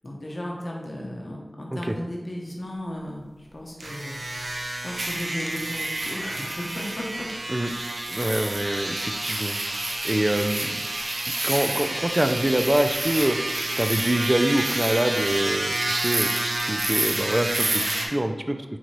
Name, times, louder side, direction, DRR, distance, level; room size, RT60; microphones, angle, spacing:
voice 1, 0.0-4.5 4.8-7.3, left 1 dB, 60° left, -2 dB, 0.8 m, -35 dB
sound 1, 3.8-18.1, right 2 dB, 90° right, 0.6 m, -28 dB
voice 2, 8.1-9.6 10.0-10.8 11.4-13.4 13.8-18.6, right 1 dB, 25° right, 7 dB, 0.4 m, -25 dB
4.4 x 3.9 x 3.1 m, 1.2 s
wide cardioid pair, 45°, 0 cm